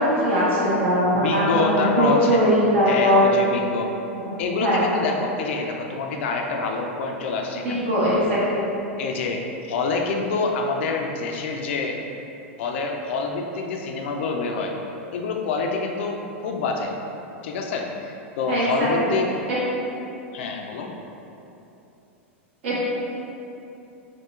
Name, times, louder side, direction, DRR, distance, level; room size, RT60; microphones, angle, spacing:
voice 1, 0.0-3.3 4.2-4.8 7.6-8.6 18.5-19.1 19.5-19.6 22.6-22.8, equal, 65° right, -8 dB, 1.1 m, -21 dB
voice 2, 1.1-2.6 2.9-3.9 4.4-7.8 9.0-12.0 12.6-14.7 15.1-16.9 17.4-19.3 20.3-20.9, left 4 dB, 65° left, 2 dB, 0.4 m, -26 dB
4.4 x 2.2 x 2.4 m, 2.9 s
hypercardioid pair, 100°, 7 cm